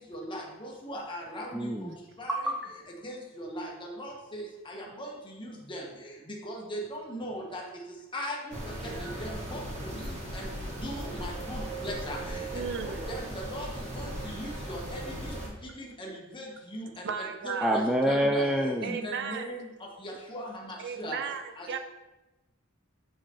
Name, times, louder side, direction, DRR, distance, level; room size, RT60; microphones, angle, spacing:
voice 1, 0.1-1.5 2.2-2.4 3.0-5.1 5.4-5.8 6.4-7.6 8.1-8.6 8.8-10.1 10.3-10.5 10.8-12.4 12.8-13.2 13.5-13.7 13.9-15.3 15.6-16.8 17.4-18.4 18.8-19.6 20.0-21.2 21.6-21.8, equal, 25° left, -2 dB, 1.0 m, -39 dB
voice 2, 1.5-2.0 2.3-2.6 17.6-19.0, equal, 5° right, 1 dB, 0.3 m, -26 dB
sound 1, 8.5-15.5, right 1 dB, 35° right, 1.4 m, -37 dB
voice 3, 12.5-13.1 17.0-17.8 18.8-19.5 20.8-21.8, right 6 dB, 55° right, 8 dB, 0.5 m, -35 dB
7.3 x 4.8 x 2.9 m, 1.1 s
head